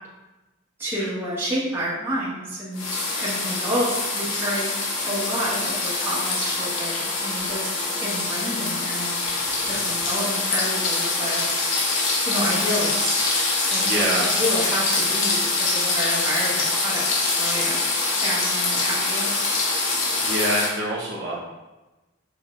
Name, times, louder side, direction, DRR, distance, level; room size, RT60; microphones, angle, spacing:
voice 1, 0.8-4.7 5.0-9.1 9.7-11.4 12.3-13.2 13.7-14.0 14.4-17.8 18.2-19.3, equal, 10° right, -9 dB, 1.2 m, -29 dB
sound 1, 2.7-20.7, left 3 dB, 90° left, 0.9 m, -24 dB
voice 2, 13.3-14.3 18.3-18.5 20.2-21.4, right 1 dB, 65° right, -5 dB, 1.0 m, -27 dB
6.9 x 2.6 x 2.5 m, 1.1 s
head